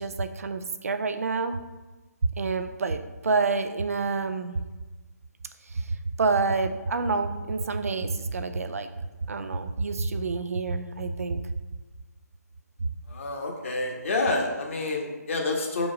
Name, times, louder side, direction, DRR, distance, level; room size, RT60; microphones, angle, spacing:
voice 1, 0.0-1.6 2.4-4.6 5.7-8.9 9.3-11.4 12.8-12.9, right 4 dB, 55° right, 8 dB, 0.5 m, -28 dB
voice 2, 13.1-15.9, left 2 dB, 50° left, 1 dB, 1.3 m, -28 dB
5.1 x 4.6 x 5.2 m, 1.2 s
figure-of-eight pair, 140°, 9 cm